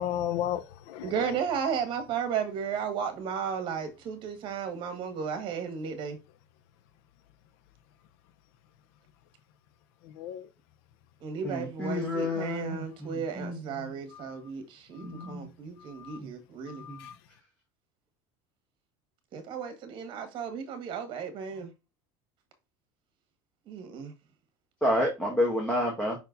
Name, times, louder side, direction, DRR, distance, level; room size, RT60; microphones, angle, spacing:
voice 1, 0.0-1.1 10.2-10.5 14.1-14.3 15.2-15.3 16.0-16.2 16.7-17.1, left 11 dB, 70° left, 0.7 m, -34 dB
voice 2, 1.0-6.2 11.2-16.8 19.3-21.7 23.6-24.1, right 6 dB, 40° right, 1.8 m, -34 dB
voice 3, 11.4-13.9 15.0-15.5 16.2-16.3 16.9-17.0 24.8-26.2, left 1 dB, 5° left, 1.6 m, -30 dB
5.5 x 4.5 x 3.9 m
cardioid pair, 150°, 13 cm